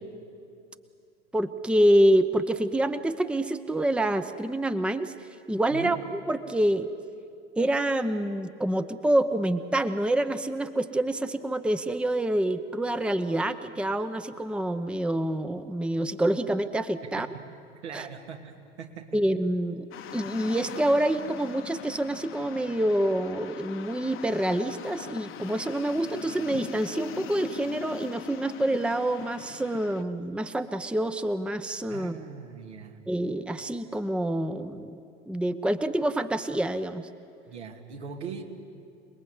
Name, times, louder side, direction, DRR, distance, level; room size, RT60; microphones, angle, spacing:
voice 1, 1.3-5.1 5.5-6.9 7.6-17.3 17.9-18.1 19.1-19.9 20.1-32.2 33.1-35.0 35.3-37.1, right 1 dB, 5° right, 10 dB, 0.9 m, -27 dB
voice 2, 17.8-18.5 18.8-19.2 31.9-33.0 37.5-38.4, right 6 dB, 75° right, 2 dB, 2.6 m, -40 dB
sound 1, 19.9-30.0, left 10 dB, 35° left, 1.2 m, -42 dB
28.5 x 20.0 x 8.2 m, 2.5 s
figure-of-eight pair, 75°, 34 cm